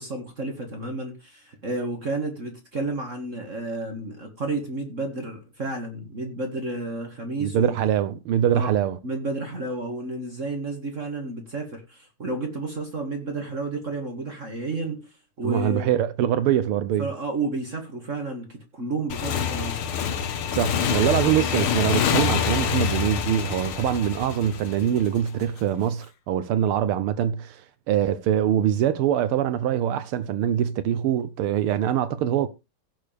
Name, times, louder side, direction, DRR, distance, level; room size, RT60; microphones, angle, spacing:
voice 1, 0.0-7.7 8.5-8.7 9.0-15.9 17.0-19.8, right 2 dB, 35° right, 2.1 m, -31 dB
voice 2, 7.4-9.0 15.4-17.1 20.5-27.6 27.9-32.5, right 10 dB, 80° right, 1.6 m, -23 dB
Motorcycle / Engine, 19.1-25.5, left 8 dB, 75° left, 2.0 m, -26 dB
16.5 x 6.6 x 3.4 m
omnidirectional pair, 2.4 m